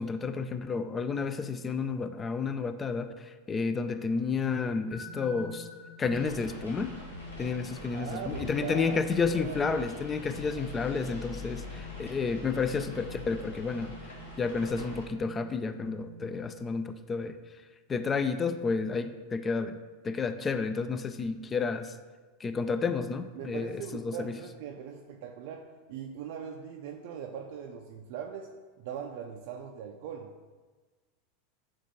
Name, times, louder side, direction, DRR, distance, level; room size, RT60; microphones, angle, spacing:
voice 1, 0.0-5.7 6.0-7.0 7.4-14.1 14.4-17.4 17.9-19.8 20.0-21.9 22.4-24.4, left 4 dB, 25° left, 10 dB, 0.3 m, -31 dB
sound 1, 4.9-16.6, equal, 45° left, 1.4 m, -49 dB
sound 2, 6.1-15.0, left 3 dB, 90° left, 1.2 m, -44 dB
voice 2, 7.9-9.0 9.3-9.7 23.4-28.5 28.8-30.3, right 7 dB, 60° right, 1 dB, 0.3 m, -40 dB
6.9 x 2.4 x 3.1 m, 1.4 s
hypercardioid pair, 95°, 0 cm